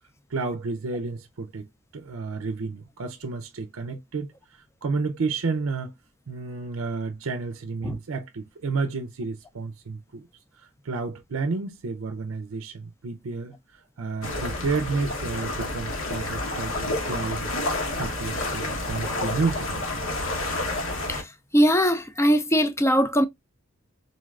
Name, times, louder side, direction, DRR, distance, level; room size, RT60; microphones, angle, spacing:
voice 1, 0.3-1.7 1.9-5.9 6.3-10.3 10.6-17.5 17.9-20.0, right 4 dB, 75° right, 0.5 m, -31 dB
sound 1, 14.2-21.2, left 2 dB, 75° left, 1.2 m, -29 dB
voice 2, 21.5-23.3, equal, 15° left, 0.5 m, -21 dB
4.0 x 3.1 x 2.4 m
head